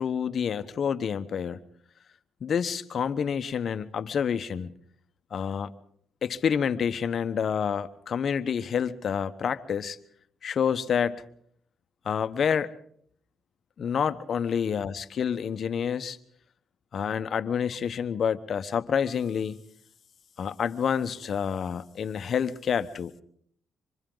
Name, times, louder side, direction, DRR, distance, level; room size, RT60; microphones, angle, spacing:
voice 1, 0.0-1.6 2.4-4.7 5.3-5.7 6.2-10.0 10.4-11.2 12.0-12.7 13.8-16.2 16.9-19.6 20.4-23.1, left 7 dB, 55° left, 12 dB, 1.1 m, -28 dB
26.0 x 25.0 x 4.0 m, 0.63 s
cardioid pair, 90°, 0 cm